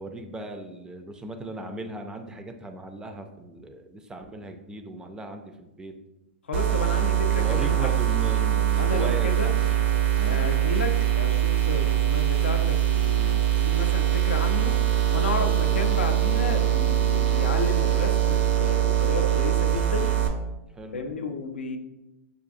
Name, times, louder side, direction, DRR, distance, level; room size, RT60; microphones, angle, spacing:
voice 1, 0.0-5.9 7.3-9.5 10.2-10.5 15.4-15.8 20.7-21.0, right 1 dB, 10° right, 6 dB, 0.3 m, -37 dB
voice 2, 6.5-7.9 8.8-9.5 10.2-14.7 15.1-20.1 20.9-21.8, left 3 dB, 90° left, 6 dB, 0.4 m, -32 dB
sound 1, 6.5-20.3, right 11 dB, 75° right, 0.6 m, -23 dB
4.9 x 2.4 x 2.6 m, 0.95 s
hypercardioid pair, 120°, 6 cm